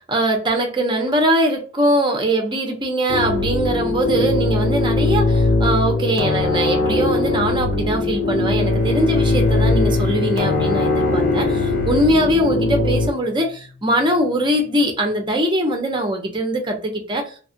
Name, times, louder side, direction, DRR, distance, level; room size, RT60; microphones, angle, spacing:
voice 1, 0.1-17.3, right 1 dB, 25° right, 0.7 m, -21 dB
sound 1, 3.1-13.1, left 2 dB, 65° left, 0.6 m, -20 dB
Bowed string instrument, 8.6-13.5, left 2 dB, 45° left, 1.2 m, -29 dB
2.9 x 2.3 x 2.7 m
head